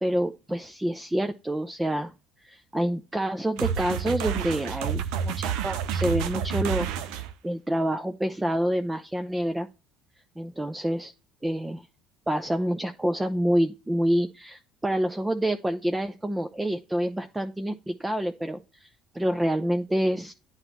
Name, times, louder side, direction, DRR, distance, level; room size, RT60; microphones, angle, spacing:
voice 1, 0.0-2.1 2.4-9.7 10.4-11.1 11.4-11.8 12.3-18.9 19.1-20.3, right 1 dB, 10° right, 7 dB, 0.6 m, -27 dB
sound 1, 3.6-7.3, right 8 dB, 70° right, 0.6 m, -29 dB
10.5 x 4.0 x 2.9 m, 0.29 s
hypercardioid pair, 65°, 0 cm